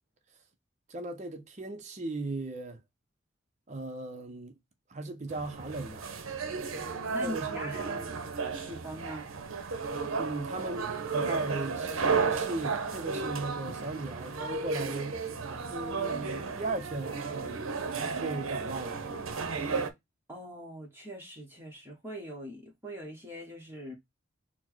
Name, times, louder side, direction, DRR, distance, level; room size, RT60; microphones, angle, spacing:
voice 1, 0.9-2.8 3.7-4.5 4.9-6.1 7.2-7.7 10.2-15.2 15.7-17.2 18.1-19.0, right 2 dB, 35° right, 0.6 m, -37 dB
sound 1, 5.3-19.9, right 4 dB, 75° right, 0.7 m, -33 dB
voice 2, 6.7-8.1 8.6-9.3 20.3-23.9, equal, 10° right, 1.0 m, -42 dB
4.3 x 2.1 x 4.4 m
head